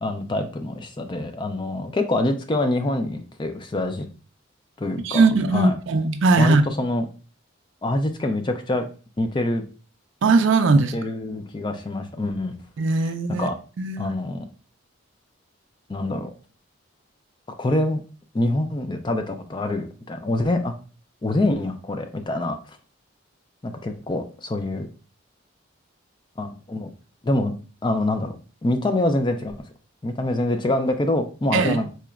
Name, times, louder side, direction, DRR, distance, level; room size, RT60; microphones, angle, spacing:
voice 1, 0.0-4.1 4.8-5.8 6.4-7.1 7.8-8.8 9.2-9.6 10.7-12.6 12.9-13.6 14.0-14.5 15.9-16.3 17.6-18.0 18.3-20.7 21.2-22.6 23.6-24.9 26.4-26.9 27.2-27.5 27.8-28.3 28.6-29.5 30.0-31.9, left 1 dB, 25° left, 0.4 m, -25 dB
voice 2, 5.0-6.6 10.2-10.9 12.8-13.5 13.8-14.1 31.5-31.8, right 3 dB, 65° right, 0.4 m, -19 dB
4.2 x 2.9 x 2.4 m
head